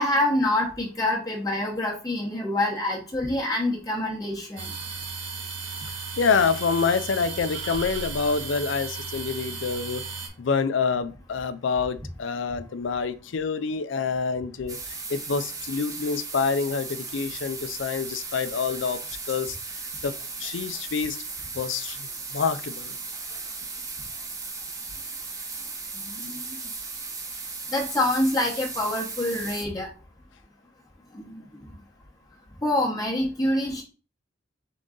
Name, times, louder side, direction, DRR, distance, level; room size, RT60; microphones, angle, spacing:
voice 1, 0.0-4.7 26.0-26.4 27.7-29.9 31.1-31.4 32.6-33.8, left 1 dB, 20° left, 0.9 m, -26 dB
sound 1, 4.6-10.3, right 4 dB, 75° right, 1.1 m, -35 dB
voice 2, 6.2-10.0 10.4-19.6 20.0-21.2 21.5-23.0, left 5 dB, 85° left, 0.4 m, -27 dB
sound 2, 14.7-29.6, right 4 dB, 20° right, 0.6 m, -36 dB
3.8 x 3.8 x 3.7 m
head